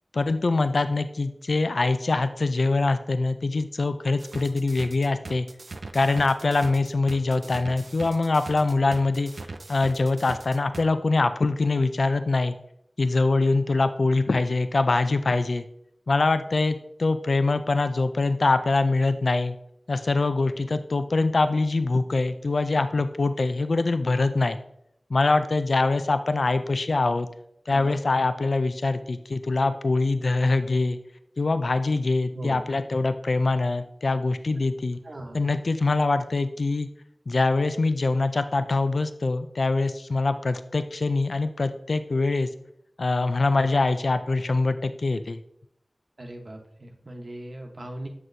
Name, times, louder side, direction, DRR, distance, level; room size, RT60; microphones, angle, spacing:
voice 1, 0.1-5.5 5.9-9.3 9.7-12.6 13.0-15.7 16.1-19.6 19.9-24.6 25.1-27.3 27.7-31.0 31.4-35.0 35.3-36.9 37.3-42.5 43.0-45.4, left 3 dB, 80° left, 10 dB, 0.4 m, -24 dB
sound 1, 4.2-10.8, right 3 dB, 80° right, 0.5 m, -40 dB
voice 2, 27.7-28.0 32.3-32.6 34.6-34.7 35.0-35.4 46.2-48.1, right 1 dB, 65° right, 3 dB, 1.0 m, -38 dB
7.6 x 6.1 x 2.6 m, 0.74 s
wide cardioid pair, 45°, 0 cm